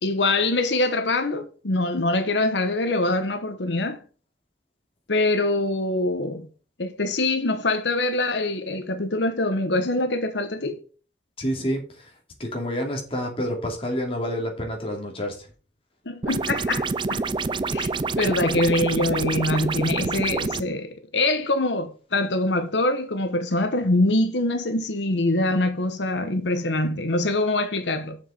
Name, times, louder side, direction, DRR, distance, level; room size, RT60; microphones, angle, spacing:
voice 1, 0.0-4.0 5.1-6.5 6.8-10.8 16.0-17.2 17.7-17.9 18.2-28.2, left 2 dB, 90° left, 1.2 m, -24 dB
voice 2, 11.4-12.1 12.4-15.5, equal, 30° left, 2.8 m, -28 dB
sound 1, 16.2-20.6, right 4 dB, 25° right, 0.4 m, -27 dB
7.2 x 6.6 x 5.5 m
head